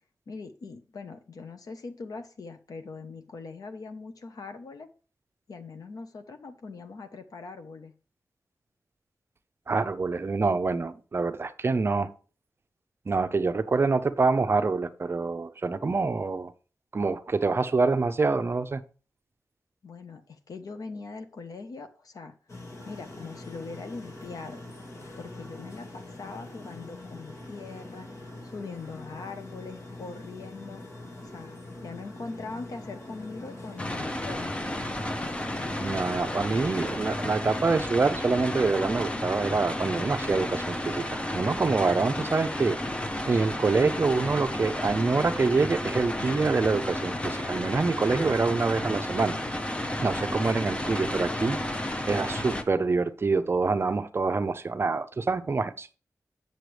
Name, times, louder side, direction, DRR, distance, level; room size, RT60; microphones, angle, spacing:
voice 1, 0.3-4.9 5.5-7.9 19.8-22.3 22.8-24.6 25.1-28.1 28.4-30.8 31.2-34.9, left 4 dB, 75° left, 1.0 m, -41 dB
voice 2, 9.7-12.1 13.1-16.5 16.9-18.8 35.8-42.8 43.3-49.4 50.0-51.6 52.1-55.9, right 4 dB, 40° right, 0.6 m, -26 dB
sound 1, 22.5-37.6, left 2 dB, 50° left, 1.8 m, -43 dB
sound 2, 33.8-52.6, left 1 dB, 20° left, 0.7 m, -32 dB
7.8 x 6.8 x 3.3 m
wide cardioid pair, 130°, 6 cm